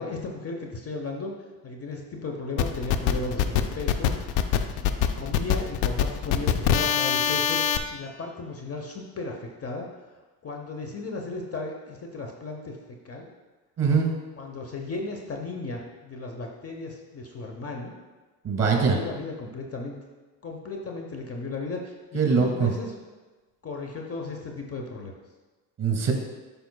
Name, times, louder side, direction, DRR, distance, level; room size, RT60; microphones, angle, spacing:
voice 1, 0.0-1.3 1.6-9.9 10.4-13.3 14.4-17.9 18.7-20.0 20.4-22.9 23.6-25.1, left 3 dB, 30° left, 2 dB, 0.8 m, -35 dB
sound 1, 2.6-7.8, left 9 dB, 65° left, 0.6 m, -24 dB
voice 2, 13.8-14.1 18.4-19.0 22.1-22.7 25.8-26.1, right 5 dB, 30° right, 2 dB, 1.9 m, -22 dB
10.5 x 5.2 x 2.3 m, 1.2 s
hypercardioid pair, 65°, 49 cm